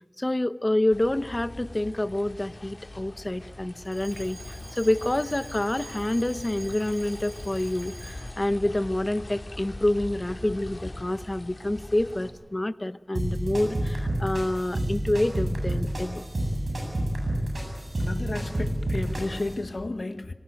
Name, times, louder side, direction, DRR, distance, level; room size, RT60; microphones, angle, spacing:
voice 1, 0.2-16.2, left 1 dB, 35° left, 14 dB, 1.0 m, -27 dB
sound 1, 0.9-12.3, left 1 dB, 55° left, 4.2 m, -41 dB
Alarm, 3.8-8.5, right 1 dB, 25° right, 7.8 m, -47 dB
sound 2, 13.1-19.5, right 1 dB, 90° right, 7.7 m, -29 dB
voice 2, 18.0-20.3, left 2 dB, 75° left, 10 dB, 1.1 m, -32 dB
25.5 x 18.0 x 9.2 m, 1.2 s
wide cardioid pair, 45°, 0 cm